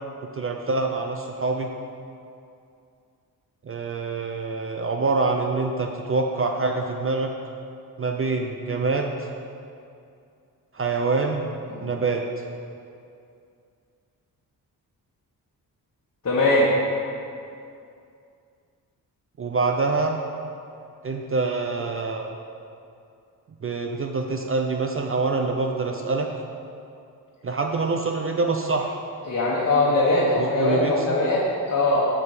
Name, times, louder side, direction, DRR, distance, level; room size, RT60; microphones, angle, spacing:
voice 1, 0.3-1.7 3.6-7.3 8.0-9.2 10.7-11.4 11.8-12.2 19.4-20.2 21.0-22.4 23.6-26.3 27.4-29.0 30.3-31.2, right 3 dB, 35° right, 3 dB, 0.5 m, -25 dB
voice 2, 16.2-16.7 29.3-32.0, left 2 dB, 45° left, -6 dB, 1.4 m, -21 dB
7.1 x 7.0 x 4.9 m, 2.5 s
wide cardioid pair, 105°, 38 cm